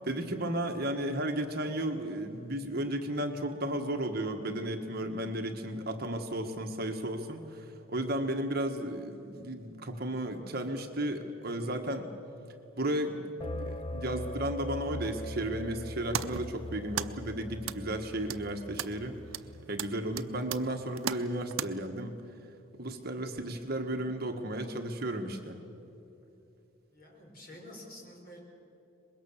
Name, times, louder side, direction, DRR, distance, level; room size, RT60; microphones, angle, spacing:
voice 1, 0.0-12.1 12.8-19.2 19.7-22.2 22.8-25.6, right 1 dB, 45° right, 4 dB, 1.5 m, -34 dB
sound 1, 13.4-19.9, left 1 dB, 25° left, 0.5 m, -41 dB
sound 2, 15.8-21.7, right 9 dB, 80° right, 0.6 m, -39 dB
voice 2, 19.5-19.8 26.9-28.4, left 1 dB, 45° left, -1 dB, 4.9 m, -50 dB
24.0 x 21.0 x 7.3 m, 2.8 s
head